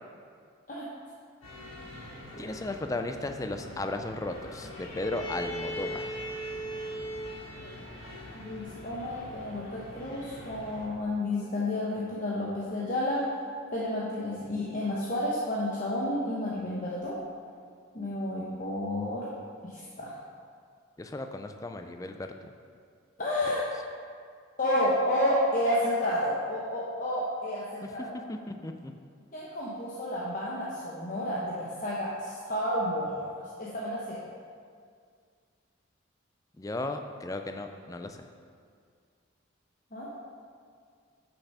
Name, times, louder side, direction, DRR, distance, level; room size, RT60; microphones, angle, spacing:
sound 1, 1.4-10.9, equal, 80° left, 2.3 m, -40 dB
voice 1, 2.4-6.2 21.0-22.5 28.3-28.9 36.6-38.3, left 2 dB, 15° left, 6 dB, 0.4 m, -35 dB
voice 2, 8.3-13.2 13.7-17.2 17.9-19.3 19.7-20.2 23.2-23.6 24.6-28.1 29.3-34.2 39.9-40.1, left 1 dB, 40° left, -6 dB, 0.9 m, -31 dB
6.9 x 5.9 x 5.5 m, 2.1 s
head